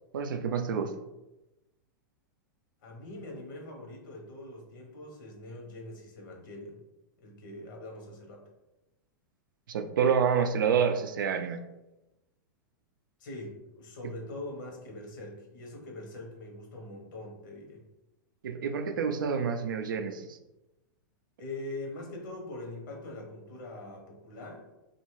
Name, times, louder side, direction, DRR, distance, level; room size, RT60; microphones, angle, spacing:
voice 1, 0.1-0.9 9.7-11.6 18.4-20.4, right 6 dB, 90° right, 7 dB, 0.4 m, -28 dB
voice 2, 2.8-6.8 7.2-8.5 13.2-17.9 21.4-24.6, left 2 dB, 75° left, 1 dB, 0.8 m, -43 dB
2.6 x 2.4 x 3.0 m, 0.98 s
hypercardioid pair, 125°, 11 cm